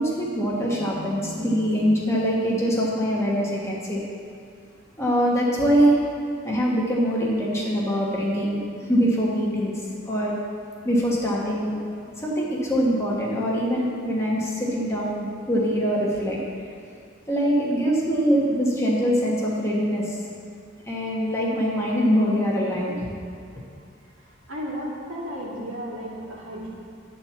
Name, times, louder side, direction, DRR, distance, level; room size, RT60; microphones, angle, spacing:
voice 1, 0.0-4.0 5.0-6.0 6.4-8.6 8.9-9.7 10.1-10.3 10.8-16.4 17.3-20.2 20.9-23.0, equal, 15° left, -5 dB, 1.4 m, -23 dB
voice 2, 24.5-26.7, equal, 75° right, -5 dB, 2.3 m, -33 dB
11.0 x 4.5 x 7.2 m, 2.3 s
head